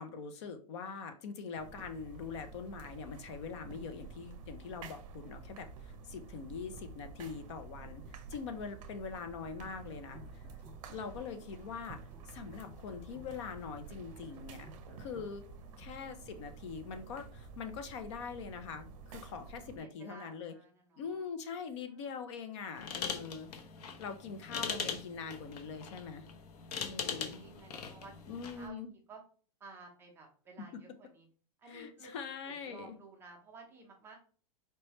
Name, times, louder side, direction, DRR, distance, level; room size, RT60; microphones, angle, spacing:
voice 1, 0.0-10.5 10.9-12.0 12.3-14.7 15.0-15.4 15.8-20.5 21.0-23.5 24.0-26.3 26.8-27.4 28.3-28.9 31.7-33.0, left 5 dB, 45° left, 8 dB, 0.6 m, -43 dB
sound 1, 1.6-19.8, right 4 dB, 55° right, 0.7 m, -50 dB
sound 2, 9.6-11.3 11.6-15.3, equal, 10° left, 1.6 m, -58 dB
voice 2, 19.5-21.3 21.8-22.1 23.7-24.0 26.9-29.2 29.6-31.3 31.6-32.1 32.4-34.2, right 3 dB, 10° right, 1 dB, 0.5 m, -54 dB
sound 3, 22.8-28.7, left 6 dB, 70° left, 0.9 m, -41 dB
4.5 x 3.2 x 3.0 m, 0.42 s
supercardioid pair, 170°, 20 cm